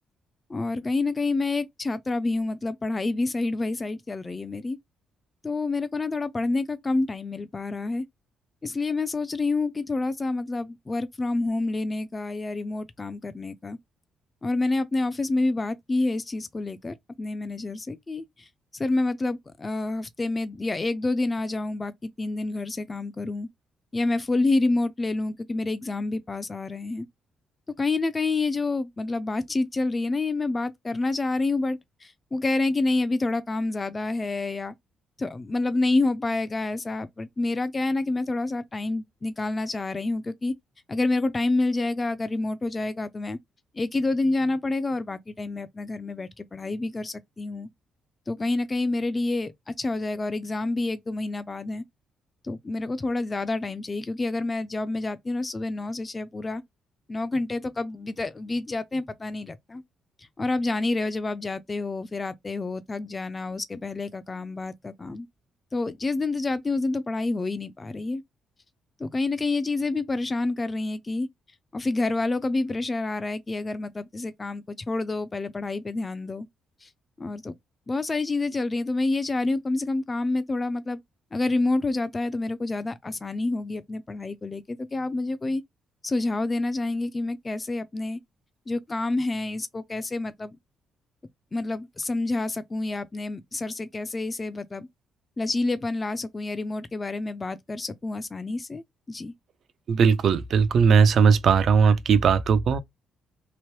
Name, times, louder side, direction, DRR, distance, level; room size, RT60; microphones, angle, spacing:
voice 1, 0.5-4.8 5.4-8.0 8.6-13.8 14.4-18.5 18.7-23.5 23.9-27.1 27.8-34.7 35.2-40.5 40.9-43.4 43.7-47.7 48.3-51.8 52.4-56.6 57.1-59.8 60.4-65.3 65.7-68.2 69.0-71.3 71.7-76.5 76.8-76.9 77.2-77.5 77.9-81.0 81.3-85.6 86.0-88.2 88.7-90.6 91.5-94.9 95.4-99.3, left 2 dB, 25° left, 0.4 m, -28 dB
voice 2, 99.9-102.8, right 6 dB, 65° right, 0.5 m, -19 dB
2.9 x 2.1 x 3.1 m
cardioid pair, 90°, 0 cm